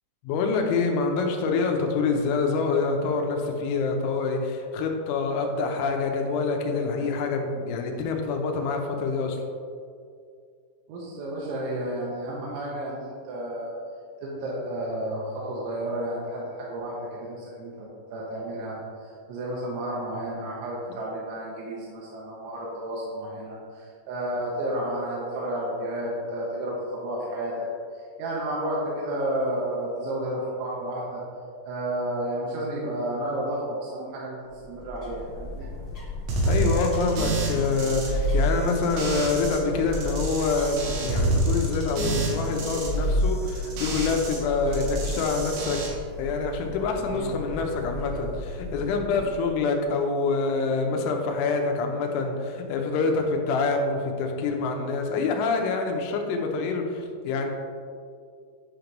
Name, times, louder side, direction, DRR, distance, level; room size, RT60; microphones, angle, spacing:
voice 1, 0.2-9.4 36.5-45.8 46.2-57.5, left 4 dB, 90° left, 3 dB, 3.2 m, -26 dB
voice 2, 10.9-13.7 14.2-18.8 19.3-27.5 28.2-31.2 31.6-34.4 34.6-35.7 47.1-47.3 49.1-49.3, right 1 dB, 85° right, -5 dB, 3.3 m, -31 dB
sound 1, 34.4-49.7, equal, 55° left, 1.3 m, -38 dB
sound 2, 36.3-39.6 39.9-44.4 44.7-45.9, right 1 dB, 70° right, 3.3 m, -27 dB
10.0 x 5.2 x 3.0 m, 2.3 s
omnidirectional pair, 5.4 m